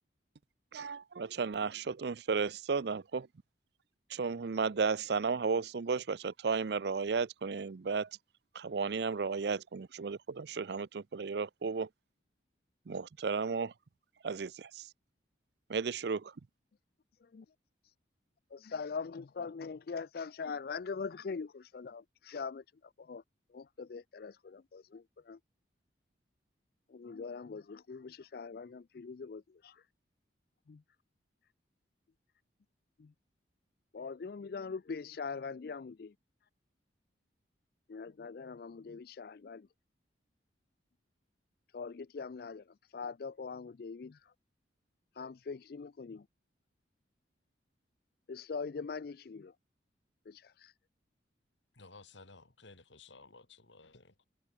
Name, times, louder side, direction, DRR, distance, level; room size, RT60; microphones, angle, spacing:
voice 1, 0.7-3.3 4.1-8.1 8.5-11.9 12.9-13.7 14.2-14.9 15.7-16.3, right 5 dB, 60° right, 0.5 m, -34 dB
voice 2, 18.5-23.2 23.5-25.4 26.9-29.9 30.7-30.8 33.0-33.1 33.9-36.1 37.9-39.7 41.7-44.3 45.1-46.3 48.3-49.5 50.3-50.7, left 5 dB, 50° left, 0.4 m, -42 dB
voice 3, 51.7-54.3, left 3 dB, 75° left, 2.6 m, -56 dB
head